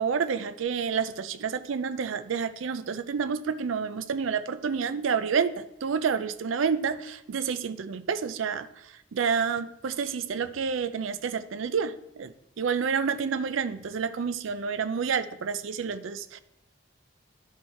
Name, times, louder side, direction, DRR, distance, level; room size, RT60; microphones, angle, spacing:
voice 1, 0.0-16.4, right 6 dB, 85° right, 12 dB, 0.4 m, -29 dB
11.0 x 4.7 x 4.2 m, 0.81 s
head